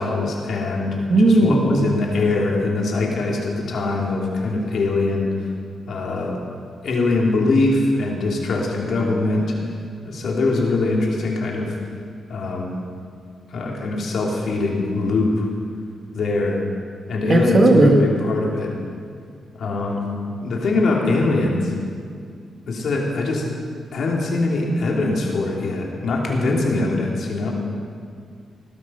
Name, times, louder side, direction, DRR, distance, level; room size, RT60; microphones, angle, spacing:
voice 1, 0.0-5.3 5.8-6.4 6.8-9.5 10.0-11.7 12.3-12.7 13.5-15.5 16.1-16.6 17.1-18.7 19.6-20.1 20.4-21.7 22.7-23.4 23.9-27.5, left 2 dB, 65° left, -1 dB, 3.2 m, -22 dB
voice 2, 1.1-1.9 17.3-18.0, right 2 dB, 40° right, 3 dB, 1.9 m, -15 dB
18.5 x 12.5 x 5.8 m, 2.2 s
cardioid pair, 110°, 0 cm